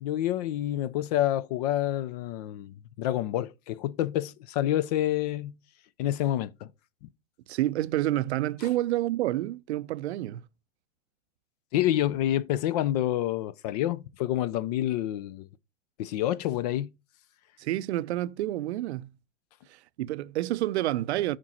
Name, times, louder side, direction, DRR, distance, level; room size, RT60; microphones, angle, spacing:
voice 1, 0.0-5.6 6.0-6.7 8.6-8.7 11.7-15.5 16.0-16.9, left 13 dB, 35° left, 0.4 m, -28 dB
voice 2, 7.5-10.4 17.6-19.1 19.7-21.4, right 15 dB, 55° right, 0.5 m, -29 dB
7.2 x 5.1 x 4.4 m
figure-of-eight pair, 100°, 39 cm